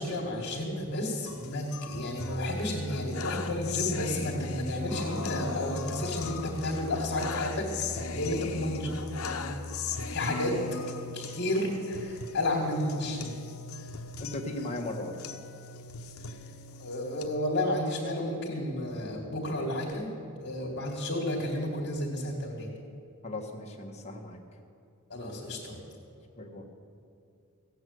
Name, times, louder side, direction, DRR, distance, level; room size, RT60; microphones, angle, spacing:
voice 1, 0.0-9.4 10.1-10.6 11.1-13.4 16.3-16.4 16.8-20.1 20.4-22.7 25.1-25.8, left 1 dB, 55° left, -4 dB, 2.0 m, -32 dB
sound 1, 1.3-17.3, left 3 dB, 75° left, 0.9 m, -37 dB
voice 2, 14.2-15.2 23.2-24.4 26.4-26.6, left 2 dB, 30° left, 1 dB, 1.6 m, -37 dB
16.0 x 8.5 x 7.8 m, 2.5 s
head